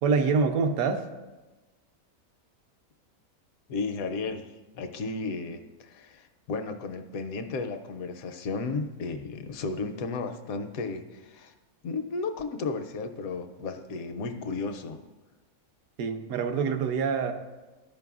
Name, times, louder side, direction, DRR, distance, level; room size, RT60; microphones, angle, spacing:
voice 1, 0.0-1.0 16.0-17.3, right 5 dB, 70° right, 6 dB, 1.1 m, -25 dB
voice 2, 3.7-4.5 4.8-11.5 11.8-15.0, left 4 dB, 75° left, 8 dB, 1.0 m, -34 dB
13.0 x 5.3 x 2.4 m, 1.2 s
omnidirectional pair, 1.6 m